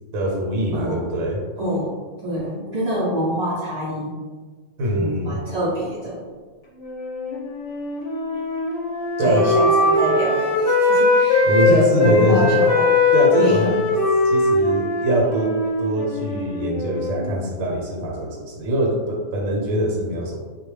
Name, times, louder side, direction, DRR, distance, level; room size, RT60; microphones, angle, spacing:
voice 1, 0.1-1.4 4.8-5.4 9.2-9.5 11.4-12.6 13.1-13.8 14.2-15.5 15.8-20.4, right 1 dB, 80° right, -1 dB, 1.0 m, -22 dB
voice 2, 1.6-1.9 2.2-4.2 4.9-6.3 9.2-12.9 13.4-13.7, equal, 60° right, -7 dB, 0.4 m, -26 dB
Wind instrument woodwind instrument, 6.8-11.7 12.0-17.3, left 2 dB, 60° left, 0.7 m, -20 dB
2.2 x 2.1 x 3.1 m, 1.4 s
omnidirectional pair, 1.4 m